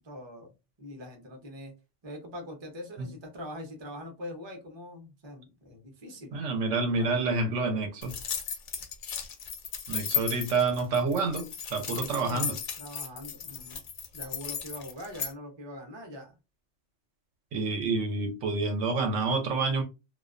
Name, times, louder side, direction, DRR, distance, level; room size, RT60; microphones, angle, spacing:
voice 1, 0.0-0.5 0.8-1.7 2.0-6.5 6.9-7.1 12.1-12.5 12.8-13.8 14.1-16.4, left 1 dB, 30° right, 0.6 m, -43 dB
voice 2, 6.3-8.1 9.9-12.5 17.5-19.8, right 3 dB, 85° right, 1.0 m, -28 dB
sound 1, 8.0-15.3, left 8 dB, 60° left, 0.5 m, -35 dB
2.3 x 2.3 x 2.4 m
omnidirectional pair, 1.2 m